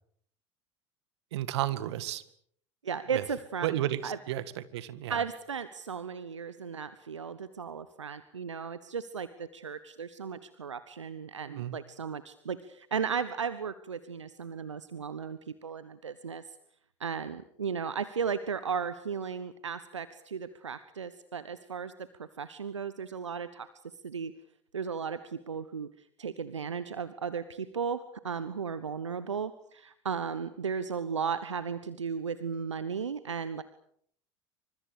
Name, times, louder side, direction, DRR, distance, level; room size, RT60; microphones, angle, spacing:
voice 1, 1.3-2.2 3.1-3.2 3.6-4.4 4.7-5.2 11.5-11.8, right 13 dB, 65° right, 15 dB, 2.0 m, -32 dB
voice 2, 2.8-3.7 4.0-4.2 5.1-16.4 17.0-23.7 24.0-24.3 24.7-25.9 26.2-33.6, right 6 dB, 80° right, 14 dB, 1.3 m, -35 dB
28.0 x 25.5 x 6.7 m, 0.66 s
figure-of-eight pair, 75°, 15 cm